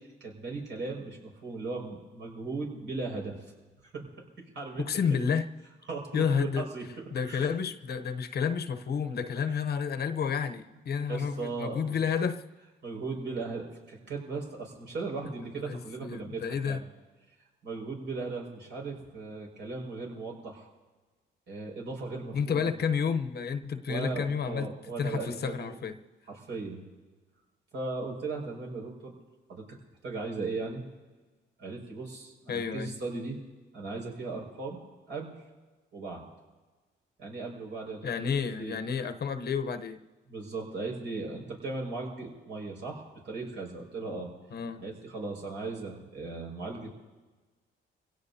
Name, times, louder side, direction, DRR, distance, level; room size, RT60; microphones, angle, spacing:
voice 1, 0.2-3.4 3.9-4.1 4.5-4.8 5.1-5.2 5.9-6.8 7.3-7.5 9.5-9.6 11.1-12.0 12.8-16.9 17.6-20.7 21.5-22.7 23.9-25.8 26.3-26.8 27.7-29.1 29.5-29.7 30.0-30.8 31.6-33.4 33.7-34.8 35.1-35.4 35.9-36.2 37.2-38.8 40.3-44.3 44.8-46.9, right 3 dB, 65° right, -1 dB, 5.8 m, -37 dB
voice 2, 4.8-5.5 6.1-6.6 7.1-12.4 15.6-16.8 22.3-24.7 25.0-26.0 32.5-32.9 38.0-40.0 44.5-44.8, left 6 dB, 55° left, 8 dB, 0.9 m, -30 dB
25.5 x 17.0 x 2.8 m, 1.3 s
cardioid pair, 90°, 20 cm